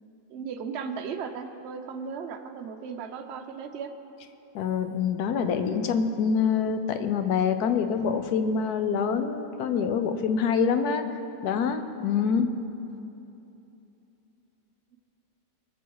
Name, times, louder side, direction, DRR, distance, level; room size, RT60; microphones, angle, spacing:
voice 1, 0.3-3.9 12.2-12.4, right 6 dB, 55° right, 6 dB, 0.7 m, -36 dB
voice 2, 4.5-11.0 11.4-12.5, left 6 dB, 65° left, 9 dB, 1.1 m, -25 dB
20.5 x 7.0 x 4.7 m, 2.9 s
omnidirectional pair, 1.9 m